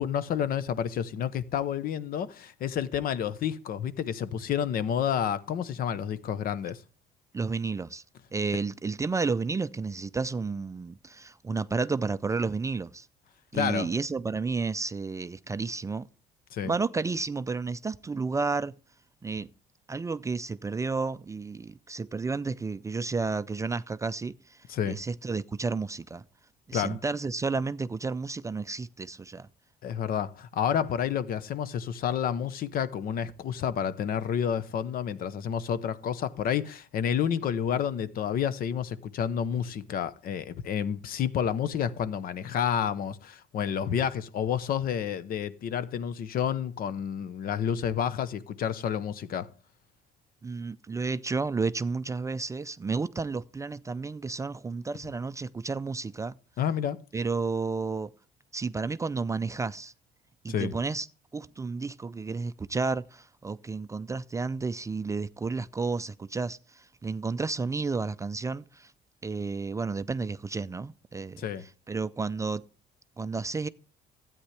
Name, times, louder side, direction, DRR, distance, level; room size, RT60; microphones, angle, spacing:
voice 1, 0.0-6.8 13.5-13.9 16.5-16.7 24.7-25.0 26.7-27.0 29.8-49.5 56.6-57.0 60.5-60.7 71.4-71.6, left 8 dB, 60° left, 0.9 m, -30 dB
voice 2, 7.3-8.0 8.3-13.1 13.5-16.1 16.6-18.8 19.2-19.5 19.9-24.6 24.8-26.2 26.7-29.5 50.4-56.4 57.1-58.1 58.5-59.9 60.4-61.1 61.3-68.9 69.2-71.5 71.9-72.6 73.2-73.7, right 4 dB, 20° right, 0.4 m, -31 dB
13.0 x 9.1 x 3.3 m
cardioid pair, 110°, 17 cm